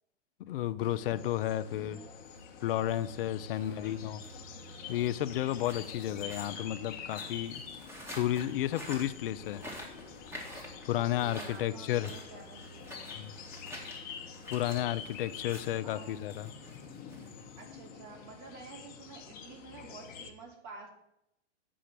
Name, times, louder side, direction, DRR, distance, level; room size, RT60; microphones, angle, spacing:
voice 1, 0.4-2.0 2.6-4.2 4.9-7.6 8.1-9.6 10.9-12.1 13.1-13.4 14.5-16.5, left 12 dB, 50° left, 0.6 m, -32 dB
sound 1, 0.8-20.3, left 6 dB, 25° left, 1.1 m, -47 dB
voice 2, 1.5-2.2 3.6-4.1 10.9-13.1 15.8-16.3 17.6-20.9, right 4 dB, 35° right, 2.8 m, -50 dB
sound 2, 2.1-17.9, equal, 5° right, 1.7 m, -50 dB
7.8 x 5.0 x 7.4 m
hypercardioid pair, 135°, 36 cm